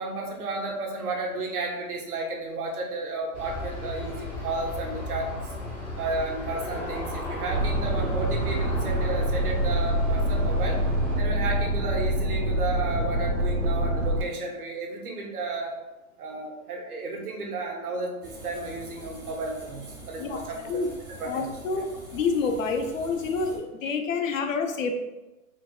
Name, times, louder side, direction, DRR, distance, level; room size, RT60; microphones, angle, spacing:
voice 1, 0.0-5.5 6.0-10.8 11.2-15.7 16.2-20.9 21.2-21.5 21.8-21.9, right 2 dB, 85° right, 0 dB, 1.0 m, -33 dB
Aircraft, 3.3-11.2, left 1 dB, 30° left, 0.7 m, -35 dB
sound 1, 7.5-14.2, right 1 dB, 60° right, 0.9 m, -26 dB
sound 2, 18.2-23.6, right 1 dB, 20° right, 0.4 m, -45 dB
voice 2, 20.2-20.9 21.3-24.9, left 4 dB, 65° left, 5 dB, 0.6 m, -28 dB
4.6 x 2.2 x 2.3 m, 1.0 s
hypercardioid pair, 160°, 44 cm